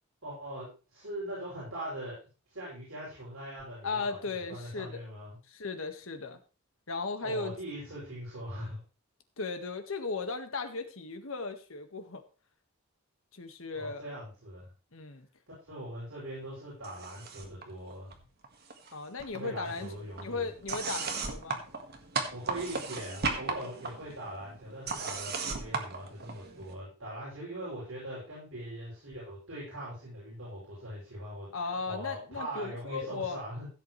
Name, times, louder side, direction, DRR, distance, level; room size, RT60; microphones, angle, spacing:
voice 1, 0.2-5.4 7.2-8.8 13.7-14.7 15.7-18.2 19.3-20.5 22.3-31.5 31.9-33.7, right 1 dB, 70° right, -8 dB, 6.8 m, -41 dB
voice 2, 3.8-5.0 5.5-6.4 6.9-7.5 9.4-12.2 13.3-14.0 14.9-15.3 18.9-19.9 20.2-21.7 31.5-33.4, left 4 dB, 75° left, 7 dB, 1.6 m, -36 dB
sound 1, 16.8-17.6 17.9-18.9 19.2-26.7, right 4 dB, 50° right, 1.7 m, -37 dB
16.0 x 8.0 x 3.2 m, 0.34 s
head